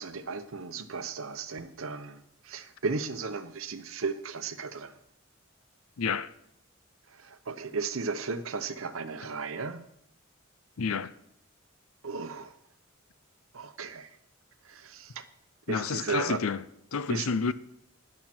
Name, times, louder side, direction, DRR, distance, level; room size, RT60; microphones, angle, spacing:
voice 1, 0.0-4.9 7.1-9.9 12.0-12.5 13.5-14.1 14.6-15.2 15.7-16.4 17.1-17.3, right 4 dB, 80° right, 0.9 m, -35 dB
voice 2, 6.0-6.3 10.8-11.1 15.7-16.6 16.9-17.5, left 5 dB, 85° left, 0.6 m, -29 dB
12.0 x 10.5 x 4.4 m
head